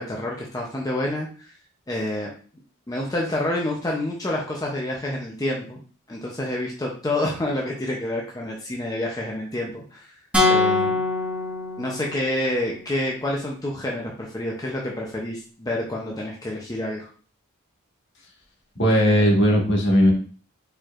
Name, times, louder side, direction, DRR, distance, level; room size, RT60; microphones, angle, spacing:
voice 1, 0.0-1.5 1.9-2.3 2.9-5.8 6.1-10.2 10.5-11.0 11.8-17.1, left 1 dB, 15° left, -2 dB, 0.6 m, -28 dB
sound 1, 10.3-12.4, left 3 dB, 5° right, 1.2 m, -23 dB
voice 2, 18.8-20.1, equal, 55° left, -1 dB, 1.4 m, -17 dB
4.5 x 4.5 x 2.4 m, 0.41 s
head